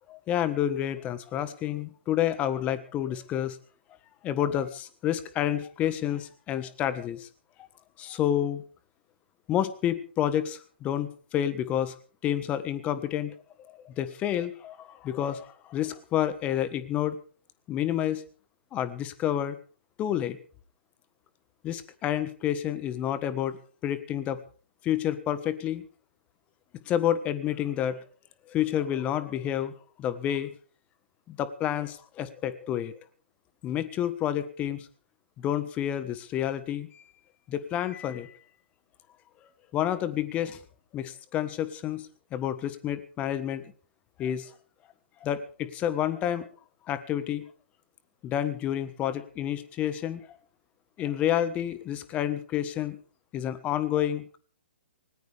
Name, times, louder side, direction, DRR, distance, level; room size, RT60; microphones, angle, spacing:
voice 1, 0.1-3.6 4.2-7.3 8.0-8.6 9.5-11.9 12.2-13.3 13.7-17.2 17.7-18.2 18.7-19.6 20.0-20.4 21.6-24.4 24.8-25.8 26.9-28.0 28.5-29.7 30.0-30.5 31.3-33.0 33.6-34.9 35.4-37.0 37.5-38.4 39.7-40.6 40.9-43.6 44.2-44.5 45.2-46.5 46.9-47.4 48.2-50.2 51.0-53.0 53.3-54.4, left 11 dB, 20° left, 13 dB, 1.5 m, -29 dB
19.5 x 19.0 x 3.5 m, 0.40 s
figure-of-eight pair, 125°, 6 cm